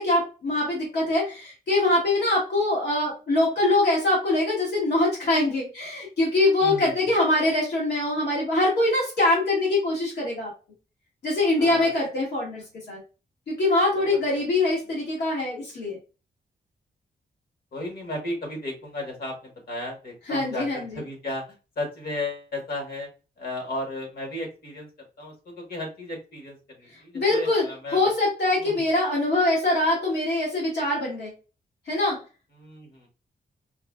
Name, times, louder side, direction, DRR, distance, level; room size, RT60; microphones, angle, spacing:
voice 1, 0.0-10.5 11.2-13.0 13.5-16.0 20.3-21.0 27.1-27.7 27.9-31.3 31.9-32.2, left 2 dB, 85° left, -5 dB, 1.7 m, -23 dB
voice 2, 6.6-6.9 11.6-11.9 14.1-14.4 17.7-21.4 21.7-23.1 23.4-24.9 25.2-28.0 28.6-28.8 32.6-33.1, left 1 dB, 65° left, 1 dB, 1.5 m, -34 dB
4.7 x 2.3 x 2.3 m, 0.32 s
wide cardioid pair, 120°, 17 cm